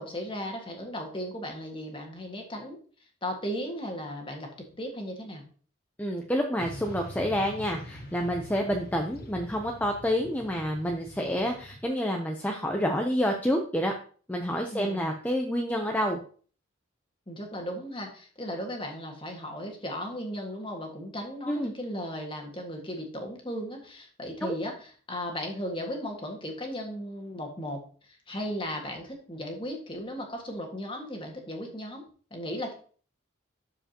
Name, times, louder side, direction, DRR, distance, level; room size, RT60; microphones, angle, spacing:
voice 1, 0.0-2.8 3.2-4.5 4.8-5.4 14.7-15.2 17.3-27.8 28.3-32.0 32.3-32.7, equal, 25° left, 2 dB, 1.7 m, -36 dB
voice 2, 6.0-13.9 14.3-16.2 21.5-21.7 24.4-24.6, equal, 10° left, 2 dB, 0.6 m, -28 dB
Motorcycle / Traffic noise roadway noise, 6.6-11.8, left 1 dB, 45° left, 1.3 m, -44 dB
12.0 x 4.9 x 2.9 m, 0.42 s
head